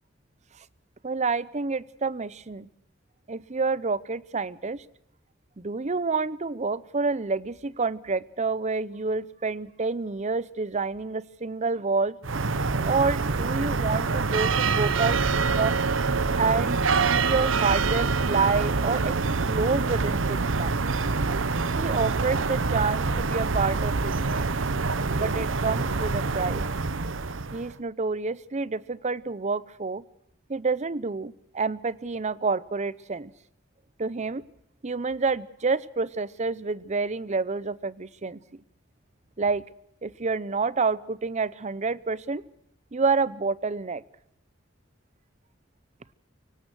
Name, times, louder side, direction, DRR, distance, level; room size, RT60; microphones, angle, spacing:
voice 1, 1.0-2.7 3.3-4.8 5.6-12.2 12.8-15.8 16.4-19.2 19.5-20.8 21.7-24.4 25.2-26.6 27.5-30.0 30.5-33.3 34.0-34.4 34.8-38.4 39.4-39.6 40.0-42.4 42.9-44.0, right 4 dB, 35° right, 19 dB, 0.7 m, -28 dB
sound 1, 12.2-27.7, right 4 dB, 80° right, 0.9 m, -26 dB
24.5 x 18.0 x 6.2 m, 0.75 s
head